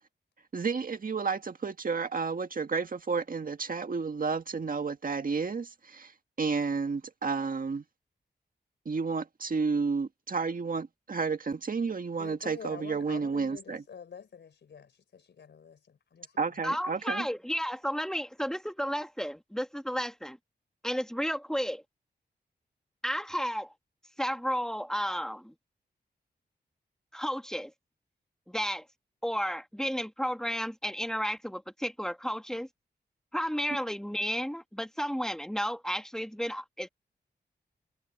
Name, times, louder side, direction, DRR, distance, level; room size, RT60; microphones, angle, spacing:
voice 1, 0.5-6.1 6.4-7.8 8.8-13.8 16.4-17.3, right 4 dB, 50° right, 1.7 m, -31 dB
voice 2, 12.2-16.4, left 6 dB, 90° left, 4.2 m, -47 dB
voice 3, 16.6-20.4 20.8-21.8 23.0-23.7 24.2-25.5 27.1-27.7 28.5-28.8 29.2-32.7 33.3-36.9, equal, 5° left, 1.8 m, -32 dB
wide cardioid pair, 75°, 18 cm